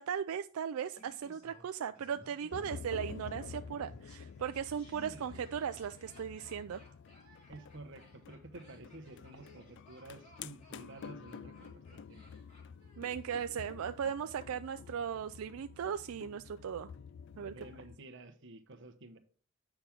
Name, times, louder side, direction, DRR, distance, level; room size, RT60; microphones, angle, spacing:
voice 1, 0.0-6.8 13.0-16.9 17.4-17.5, right 8 dB, 90° right, 0.4 m, -37 dB
Laughter, 0.9-13.9 14.2-14.3, left 1 dB, 30° left, 3.4 m, -60 dB
sound 1, 2.5-18.0, left 6 dB, 55° left, 0.3 m, -50 dB
voice 2, 4.9-5.5 7.5-12.2 17.4-19.2, right 2 dB, 60° right, 1.0 m, -51 dB
8.7 x 5.9 x 3.6 m
head